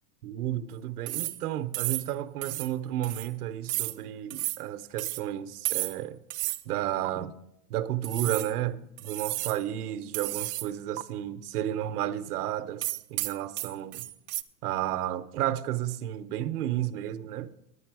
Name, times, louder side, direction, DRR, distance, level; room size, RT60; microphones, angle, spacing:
voice 1, 0.2-6.2 6.6-7.3 7.7-14.1 14.6-17.5, right 12 dB, 80° right, 0.9 m, -32 dB
sound 1, 1.1-1.4 1.7-2.1 2.4-2.7 3.0-3.3 3.7-4.0 4.3-4.6 5.0-5.2 5.7-6.0 6.3-6.6 7.0-7.1 8.0-8.5 9.0-9.6 10.1-10.7 11.0-11.1 12.8-14.4, right 19 dB, 50° right, 0.5 m, -32 dB
11.0 x 10.0 x 4.7 m
supercardioid pair, 160°, 45 cm